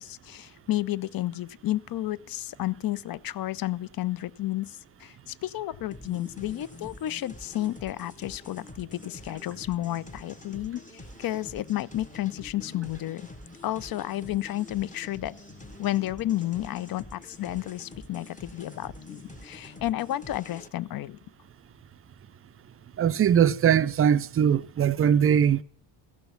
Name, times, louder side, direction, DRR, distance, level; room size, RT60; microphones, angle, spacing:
voice 1, 0.0-10.8 11.2-13.3 13.6-15.3 15.8-21.2, left 14 dB, 50° left, 0.5 m, -31 dB
sound 1, 5.9-20.7, left 2 dB, 15° left, 1.1 m, -46 dB
voice 2, 23.0-25.6, right 8 dB, 35° right, 0.4 m, -21 dB
15.0 x 6.1 x 6.9 m
cardioid pair, 90°, 44 cm